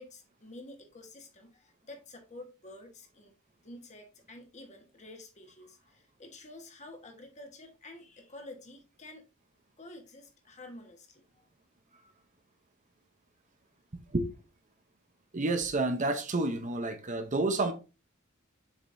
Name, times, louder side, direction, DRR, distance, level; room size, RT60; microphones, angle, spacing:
voice 1, 0.0-3.3 3.6-9.3 9.8-11.2, left 2 dB, 35° left, 1.4 m, -49 dB
voice 2, 15.3-17.7, right 2 dB, 35° right, 0.8 m, -29 dB
7.1 x 5.1 x 2.7 m
head